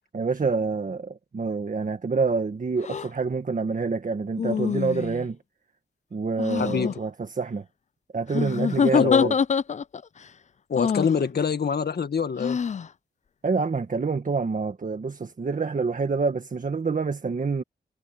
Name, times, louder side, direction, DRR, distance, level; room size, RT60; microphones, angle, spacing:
voice 1, 0.1-5.4 6.1-7.6 8.1-9.3 13.4-17.6, right 4 dB, 50° right, 1.7 m, -27 dB
sound 1, 2.8-3.1 4.4-5.3 6.4-6.9 8.3-10.0 10.8-11.2 12.4-12.9, left 6 dB, 40° left, 0.4 m, -25 dB
voice 2, 6.6-7.0 8.9-9.3 10.7-12.6, left 6 dB, 65° left, 1.8 m, -25 dB
wide cardioid pair, 90°, 18 cm